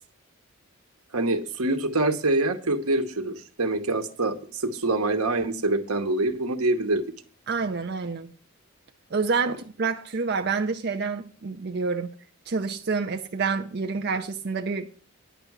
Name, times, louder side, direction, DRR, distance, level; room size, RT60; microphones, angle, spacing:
voice 1, 1.1-7.0, right 2 dB, 85° right, 1.1 m, -25 dB
voice 2, 7.5-8.3 9.1-12.1 12.5-14.9, right 4 dB, 50° right, 0.6 m, -28 dB
10.5 x 6.7 x 6.0 m
head